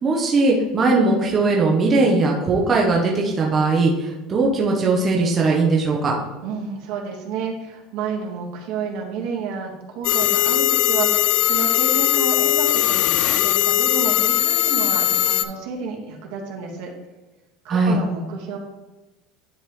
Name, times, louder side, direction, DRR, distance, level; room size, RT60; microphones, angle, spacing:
voice 1, 0.0-6.1 17.7-18.0, right 3 dB, 20° right, -2 dB, 0.8 m, -19 dB
voice 2, 6.4-16.9 17.6-18.6, right 5 dB, 70° right, -1 dB, 1.5 m, -30 dB
sound 1, 10.0-15.4, left 15 dB, 60° left, 0.3 m, -19 dB
10.0 x 3.6 x 3.1 m, 1.1 s
cardioid pair, 170°, 0 cm